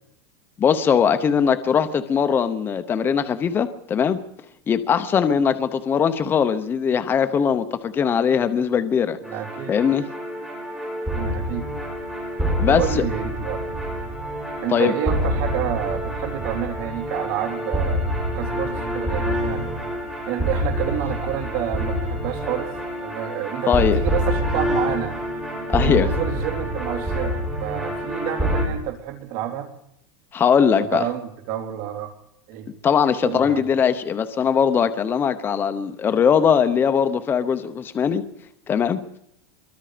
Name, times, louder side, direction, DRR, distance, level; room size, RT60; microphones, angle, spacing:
voice 1, 0.6-4.2 4.7-9.2 9.7-10.1 12.6-13.0 14.7-14.9 23.7-24.0 25.7-26.1 30.3-31.0 32.8-38.2 38.7-39.0, left 7 dB, 15° left, 0.9 m, -20 dB
sound 1, 9.2-28.7, equal, 5° right, 4.7 m, -26 dB
voice 2, 9.3-9.7 11.1-11.7 12.7-13.6 14.6-18.0 18.3-19.9 20.3-22.7 23.0-25.2 25.8-29.7 30.9-32.1 32.5-32.7 33.2-33.6, right 11 dB, 50° right, 3.7 m, -29 dB
25.5 x 23.5 x 5.1 m
supercardioid pair, 170°, 13 cm